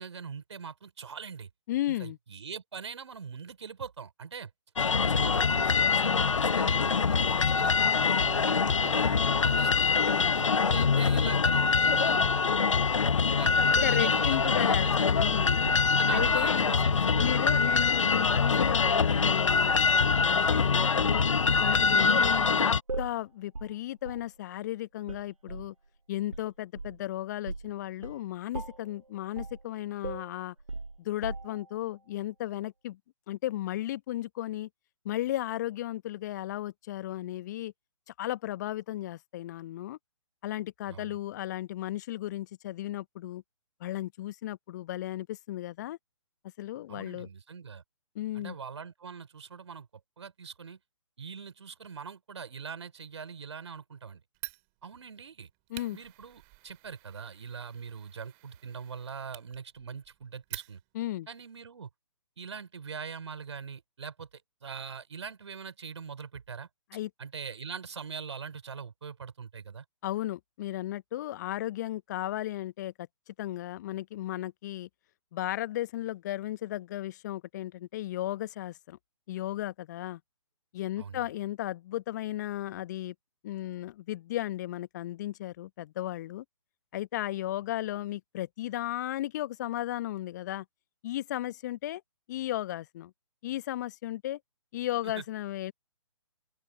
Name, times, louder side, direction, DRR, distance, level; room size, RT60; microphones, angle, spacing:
voice 1, 0.0-1.5 1.9-4.5 5.1-9.8 10.3-15.1 16.0-17.2 17.5-17.7 40.9-41.2 46.9-47.8 48.3-49.9 50.2-50.8 51.2-54.2 54.8-55.5 55.9-60.8 61.3-61.9 62.4-66.7 67.2-69.8 81.0-81.3 95.0-95.2, right 6 dB, 60° right, 4.2 m, -42 dB
voice 2, 1.7-2.2 10.0-10.4 13.7-15.7 16.1-16.7 17.2-21.2 21.6-25.7 26.1-30.5 31.0-33.0 33.3-34.7 35.0-37.7 38.2-40.0 40.4-43.4 43.8-46.0 46.6-47.3 48.1-48.6 55.7-56.0 60.9-61.3 66.9-67.1 70.0-74.9 75.3-79.0 79.3-80.2 80.7-83.1 83.4-86.4 86.9-90.6 91.0-92.0 92.3-93.1 93.4-94.4 94.7-95.7, left 14 dB, 35° left, 1.1 m, -35 dB
sound 1, 4.8-22.8, left 5 dB, 70° left, 0.7 m, -24 dB
sound 2, 13.8-16.5 17.1-17.4 18.1-18.5 18.8-19.5 20.0-20.2 20.7-21.1 21.5-22.3 22.9-23.2 23.5-23.8 24.1-24.3 25.1-25.7 26.3-27.1 27.5-27.7 28.0-28.2 28.5-28.9 29.4-29.6 30.0-31.7, right 3 dB, 80° right, 1.2 m, -39 dB
Fire, 54.3-61.1, right 40 dB or more, 25° right, 2.1 m, -48 dB
open air
figure-of-eight pair, 135°, 17 cm